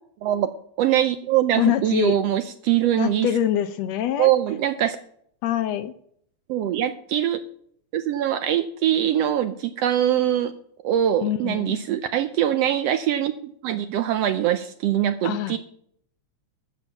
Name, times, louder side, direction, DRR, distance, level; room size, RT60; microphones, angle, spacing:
voice 1, 0.8-3.3 4.2-5.0 6.5-7.4 7.9-10.5 10.8-15.6, right 11 dB, 75° right, 11 dB, 1.5 m, -23 dB
voice 2, 1.6-2.1 3.0-4.3 5.4-5.9 11.2-11.8 15.2-15.6, left 11 dB, 75° left, 12 dB, 1.7 m, -24 dB
12.5 x 7.5 x 7.0 m, 0.66 s
omnidirectional pair, 3.4 m